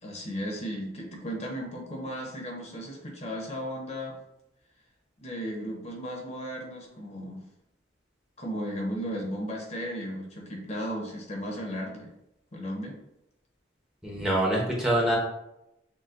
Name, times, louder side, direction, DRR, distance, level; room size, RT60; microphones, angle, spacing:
voice 1, 0.0-4.2 5.2-7.4 8.4-12.1 12.5-12.9, equal, 35° left, 0 dB, 0.8 m, -35 dB
voice 2, 14.0-15.2, right 1 dB, 5° right, -4 dB, 0.8 m, -25 dB
6.5 x 2.2 x 2.5 m, 0.85 s
head